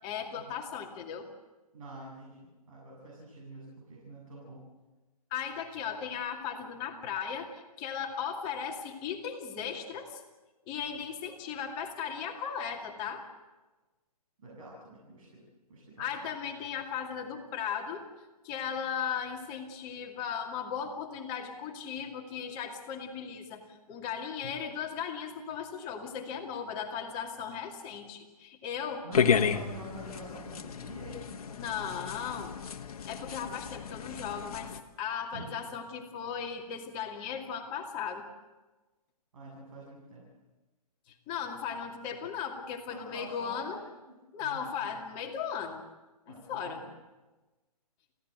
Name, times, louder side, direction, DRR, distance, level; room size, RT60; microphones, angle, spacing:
voice 1, 0.0-1.3 5.3-10.2 10.7-13.2 16.0-18.0 18.4-29.1 31.6-32.5 33.1-38.2 41.1-43.8 44.3-45.8 46.3-46.8, left 7 dB, 25° left, 2 dB, 2.5 m, -37 dB
voice 2, 1.7-4.6 14.4-15.4 15.7-16.3 29.0-31.4 35.3-35.4 39.3-40.3 42.9-43.8 44.1-44.9 46.3-46.9, right 2 dB, 55° right, -3 dB, 7.5 m, -47 dB
sound 1, 29.1-34.8, left 7 dB, 65° left, 1.5 m, -32 dB
27.0 x 16.5 x 7.8 m, 1.2 s
hypercardioid pair, 145°, 20 cm